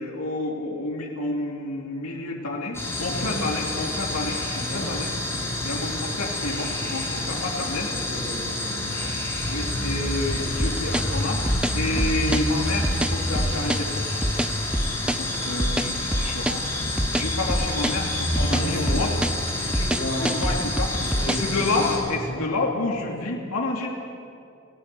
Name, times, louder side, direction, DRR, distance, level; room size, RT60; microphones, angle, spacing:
voice 1, 0.0-5.1 5.6-7.9 9.5-11.4 11.7-14.2 15.1-16.7 17.1-19.1 19.6-20.9 21.3-23.9, left 2 dB, 85° left, -1 dB, 2.9 m, -29 dB
sound 1, 2.7-22.0, left 1 dB, 10° left, 5.4 m, -28 dB
voice 2, 3.1-3.4 4.6-4.9 7.5-9.0 11.8-12.0 15.1-15.4 18.3-19.0 19.7-20.6 20.9-21.6 22.3-22.5, equal, 55° left, -3 dB, 7.5 m, -34 dB
sound 2, 10.6-21.5, right 1 dB, 5° right, 0.5 m, -26 dB
30.0 x 16.5 x 7.0 m, 2.4 s
head